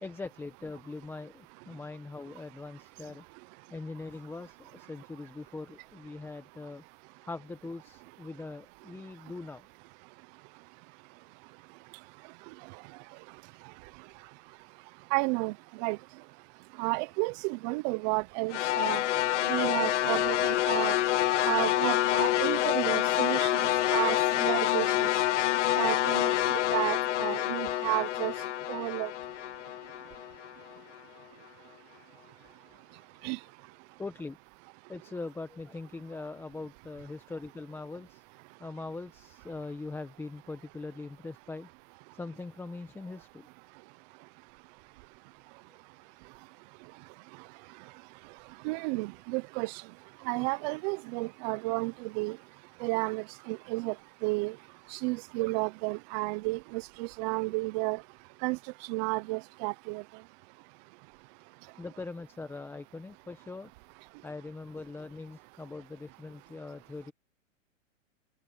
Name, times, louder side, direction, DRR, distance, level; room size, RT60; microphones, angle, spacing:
voice 1, 0.0-3.2 3.7-6.8 7.2-9.7 34.0-34.4 34.9-38.2 38.6-41.7 42.1-43.5 61.8-63.7 64.2-67.1, left 3 dB, 5° left, 1.2 m, -41 dB
voice 2, 15.1-16.0 16.8-19.0 19.5-21.0 21.4-25.1 25.7-28.3 28.7-29.1 33.2-33.4 48.6-49.8 50.2-52.4 52.8-53.9 54.2-54.6 54.9-58.0 58.4-58.6 58.9-60.0, right 26 dB, 35° right, 0.9 m, -32 dB
sound 1, 18.5-30.8, left 13 dB, 65° left, 2.1 m, -27 dB
hypercardioid pair, 140°, 38 cm